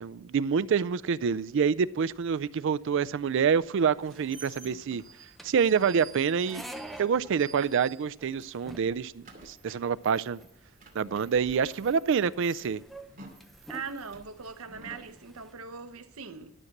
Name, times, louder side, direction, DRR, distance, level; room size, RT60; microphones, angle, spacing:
voice 1, 0.0-5.0 5.4-6.6 7.0-10.4 10.9-12.8, right 6 dB, 60° right, 0.4 m, -27 dB
sound 1, 1.4-15.5, right 1 dB, ahead, 0.7 m, -51 dB
sound 2, 3.9-8.4 8.7-15.1, right 4 dB, 40° right, 2.5 m, -51 dB
voice 2, 13.7-16.5, right 5 dB, 85° right, 0.9 m, -40 dB
12.5 x 6.5 x 5.9 m
head